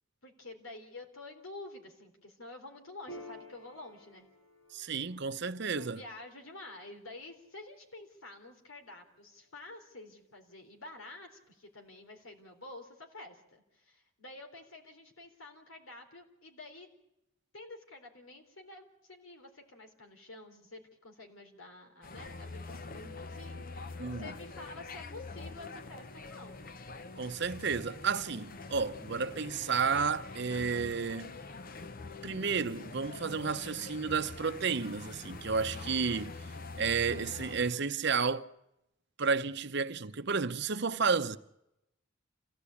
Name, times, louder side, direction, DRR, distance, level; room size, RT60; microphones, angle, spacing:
voice 1, 0.2-4.3 4.8-5.1 5.7-16.9 17.5-26.7 37.1-37.9, left 2 dB, 90° left, 3.9 m, -49 dB
Piano, 3.1-10.0, equal, 70° left, 5.9 m, -55 dB
voice 2, 4.7-6.0 24.0-24.3 27.2-31.3 32.2-36.3 36.8-38.5 39.2-41.4, right 5 dB, 55° right, 0.8 m, -32 dB
sound 1, 22.0-37.7, left 3 dB, 45° left, 0.8 m, -45 dB
27.5 x 16.5 x 8.5 m
head